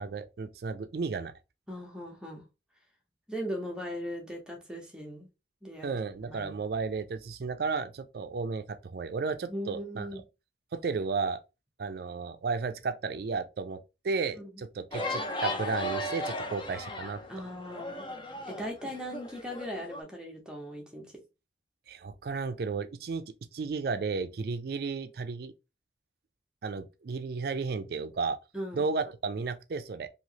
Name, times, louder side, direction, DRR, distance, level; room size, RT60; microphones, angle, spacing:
voice 1, 0.0-1.3 5.8-10.2 10.7-11.4 11.8-13.8 14.0-17.2 21.9-25.5 26.6-28.4 28.7-30.1, right 4 dB, 55° right, 0.4 m, -33 dB
voice 2, 1.7-2.4 3.3-5.3 5.6-6.6 9.5-10.2 14.4-14.6 17.3-18.1 18.4-21.1 28.5-28.8, equal, 5° right, 0.7 m, -39 dB
sound 1, 14.9-20.0, left 1 dB, 25° left, 0.5 m, -36 dB
3.0 x 2.7 x 2.8 m
head